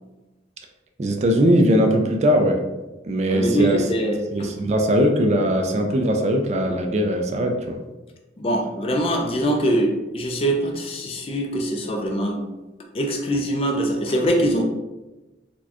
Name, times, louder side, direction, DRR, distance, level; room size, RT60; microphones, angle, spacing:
voice 1, 1.0-2.7 3.0-3.8 4.3-7.8, equal, 40° right, 4 dB, 0.3 m, -20 dB
voice 2, 3.3-4.5 8.4-12.5 12.9-14.6, right 1 dB, 30° left, 2 dB, 0.4 m, -23 dB
4.2 x 2.2 x 2.8 m, 1.1 s
head